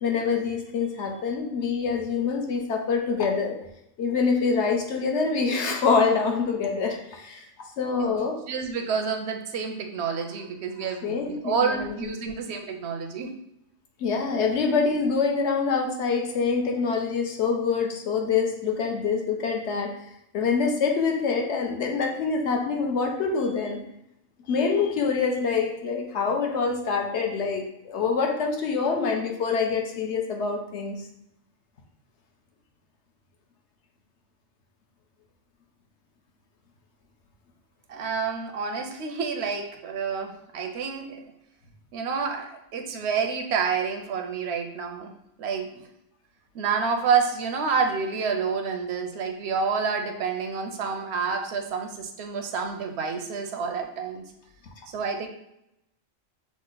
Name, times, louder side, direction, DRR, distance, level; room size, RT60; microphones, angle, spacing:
voice 1, 0.0-3.6 4.0-8.4 11.0-12.1 14.0-19.9 20.3-23.8 24.5-30.9, left 5 dB, 65° left, 2 dB, 0.9 m, -25 dB
voice 2, 8.5-13.3 37.9-41.2 41.9-45.1 45.4-45.8 46.5-54.3 54.9-55.3, right 5 dB, 65° right, 5 dB, 0.7 m, -28 dB
6.1 x 2.1 x 3.8 m, 0.82 s
omnidirectional pair, 1.4 m